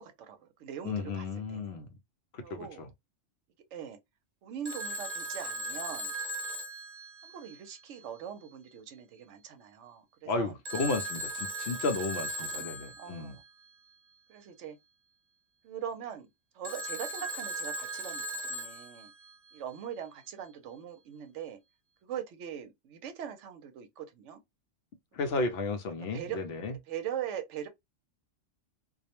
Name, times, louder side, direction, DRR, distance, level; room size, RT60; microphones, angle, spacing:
voice 1, 0.0-1.8 2.4-2.8 3.7-4.0 4.4-6.1 7.2-10.5 12.4-13.4 14.3-14.8 15.6-16.3 16.5-19.1 19.5-21.6 22.0-24.4 25.2-25.4 26.1-26.4 26.9-27.7, right 9 dB, 75° right, 0.9 m, -41 dB
voice 2, 0.8-1.9 2.5-2.9 10.3-13.4 25.1-26.7, left 3 dB, 65° left, 0.7 m, -33 dB
Telephone, 4.6-7.7 10.6-13.2 16.6-19.3, right 1 dB, 35° right, 0.8 m, -38 dB
2.4 x 2.0 x 2.8 m
omnidirectional pair, 1.3 m